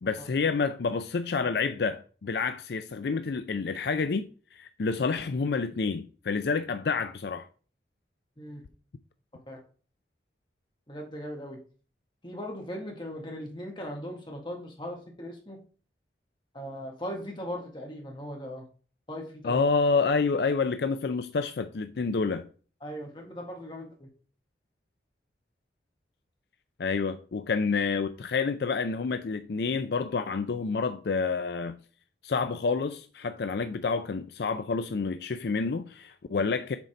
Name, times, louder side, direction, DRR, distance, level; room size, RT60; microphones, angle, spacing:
voice 1, 0.0-4.3 4.5-7.5 19.4-22.4 26.8-31.8 32.2-36.8, left 4 dB, 65° left, 0.4 m, -28 dB
voice 2, 10.9-11.6 12.2-15.6 16.5-18.6 19.1-19.6 22.8-24.1, equal, 25° left, 1.9 m, -39 dB
7.4 x 4.0 x 5.1 m
head